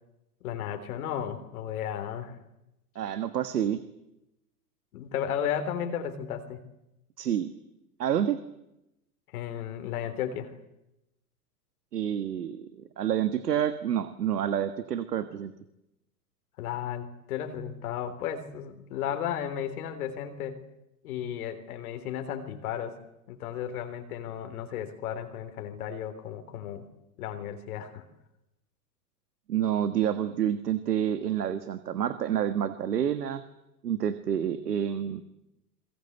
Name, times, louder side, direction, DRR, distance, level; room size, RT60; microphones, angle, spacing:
voice 1, 0.4-2.4 4.9-6.6 9.3-10.5 16.6-20.6 21.0-23.0 23.3-26.9 27.2-28.1, left 9 dB, 65° left, 7 dB, 3.6 m, -34 dB
voice 2, 2.9-3.8 7.2-7.5 8.0-8.4 11.9-15.5 29.5-33.4 33.8-35.2, right 9 dB, 85° right, 11 dB, 1.6 m, -28 dB
28.0 x 22.5 x 8.1 m, 0.89 s
hypercardioid pair, 105°, 46 cm